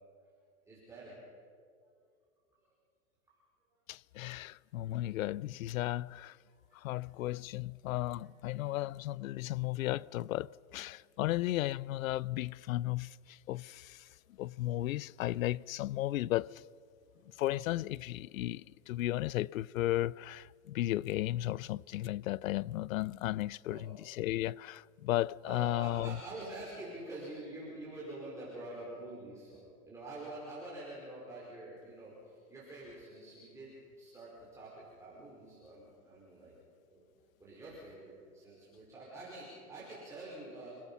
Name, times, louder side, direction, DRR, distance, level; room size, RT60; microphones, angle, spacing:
voice 1, 0.6-1.2 6.5-7.1 7.8-8.2 8.4-8.8 17.0-17.3 23.6-23.9 25.4-36.5 36.9-37.1 37.4-40.7, right 2 dB, 5° right, 4.9 m, -47 dB
voice 2, 3.9-6.4 6.7-14.1 14.4-16.6 17.4-26.2, left 15 dB, 70° left, 0.5 m, -35 dB
29.0 x 18.0 x 5.7 m
hypercardioid pair, 145°, 43 cm